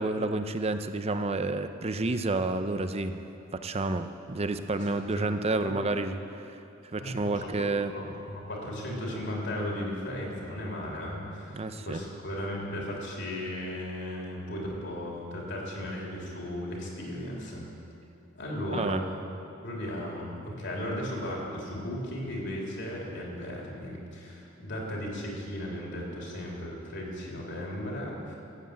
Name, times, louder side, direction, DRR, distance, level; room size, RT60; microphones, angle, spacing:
voice 1, 0.0-3.3 3.6-6.2 6.9-7.9 11.5-12.0 18.7-19.0, right 2 dB, 30° right, 9 dB, 0.6 m, -30 dB
voice 2, 4.9-5.3 5.6-5.8 7.0-17.7 18.3-19.1 19.6-28.3, left 1 dB, 60° left, -2 dB, 3.4 m, -36 dB
15.0 x 7.9 x 8.7 m, 2.7 s
head